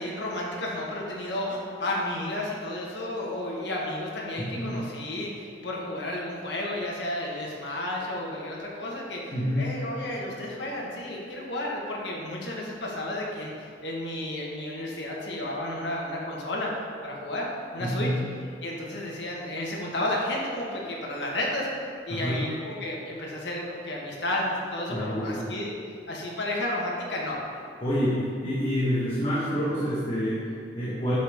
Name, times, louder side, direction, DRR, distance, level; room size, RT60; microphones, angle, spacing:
voice 1, 0.0-16.7 17.0-17.5 17.7-18.1 18.6-21.7 22.1-25.8 26.1-27.4, left 1 dB, 70° left, -3 dB, 1.7 m, -32 dB
voice 2, 4.4-4.8 9.3-9.8 17.8-18.2 22.1-22.5 24.9-25.5 27.8-31.1, equal, 30° left, -8 dB, 1.4 m, -28 dB
8.5 x 7.1 x 3.7 m, 2.3 s
head